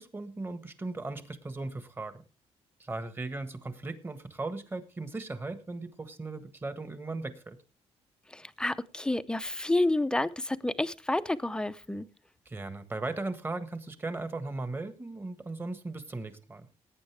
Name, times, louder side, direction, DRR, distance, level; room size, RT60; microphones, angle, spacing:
voice 1, 0.0-2.2 2.8-7.6 12.4-16.7, right 2 dB, 20° right, 1.6 m, -37 dB
voice 2, 8.3-12.1, left 2 dB, 5° left, 0.7 m, -29 dB
18.5 x 9.0 x 3.4 m
cardioid pair, 120°, 12 cm